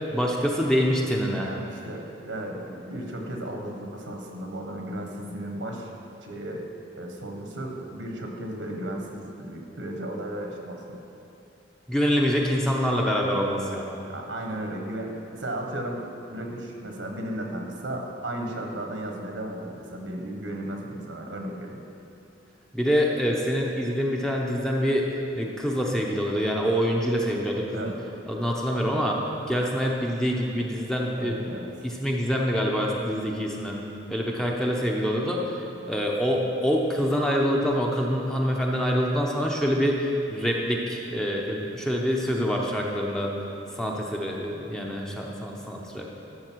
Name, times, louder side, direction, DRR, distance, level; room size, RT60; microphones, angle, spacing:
voice 1, 0.1-1.5 11.9-14.0 22.7-25.1 25.3-27.9 28.3-29.2 29.5-31.3 31.8-33.8 34.1-43.3 43.8-46.1, equal, 5° left, -2 dB, 0.8 m, -25 dB
voice 2, 1.4-5.9 6.2-6.6 7.0-11.0 14.1-21.8 27.7-28.0 31.2-31.7, right 1 dB, 80° right, 1 dB, 1.3 m, -35 dB
13.0 x 6.6 x 4.6 m, 2.8 s
head